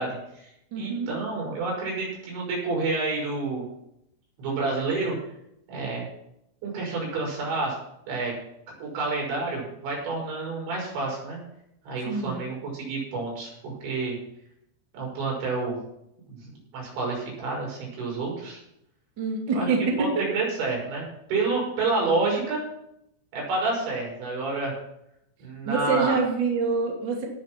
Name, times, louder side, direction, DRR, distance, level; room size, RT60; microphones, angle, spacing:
voice 1, 0.0-3.7 4.4-5.2 5.7-6.1 6.6-7.7 8.1-8.3 8.8-11.4 11.8-14.2 14.9-15.8 16.3-18.6 19.5-21.0 21.3-22.6 23.3-24.8 25.4-26.2, right 3 dB, 80° right, -3 dB, 8.1 m, -29 dB
voice 2, 0.7-1.1 12.1-12.4 19.2-20.0 22.1-22.2 25.7-27.3, right 4 dB, 30° right, 0 dB, 2.3 m, -26 dB
18.0 x 7.9 x 6.0 m, 0.79 s
omnidirectional pair, 5.2 m